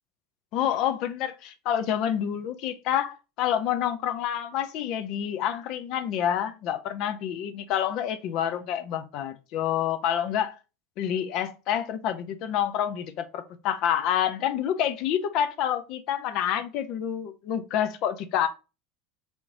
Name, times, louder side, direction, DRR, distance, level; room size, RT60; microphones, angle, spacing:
voice 1, 0.5-10.5 11.0-18.5, left 10 dB, 55° left, 0.5 m, -28 dB
3.5 x 3.1 x 3.8 m
hypercardioid pair, 80°, 0 cm